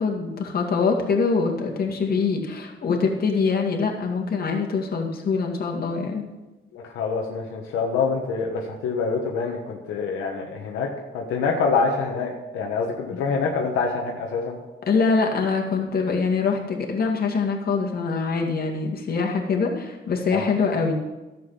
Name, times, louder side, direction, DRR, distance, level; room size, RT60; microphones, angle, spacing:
voice 1, 0.0-6.3 13.1-13.2 14.9-20.9, left 4 dB, 50° left, 1 dB, 2.2 m, -24 dB
voice 2, 6.7-10.9 11.1-14.6 20.3-20.5, left 4 dB, 90° left, 0 dB, 1.3 m, -26 dB
11.5 x 7.5 x 5.7 m, 1.1 s
cardioid pair, 90°, 20 cm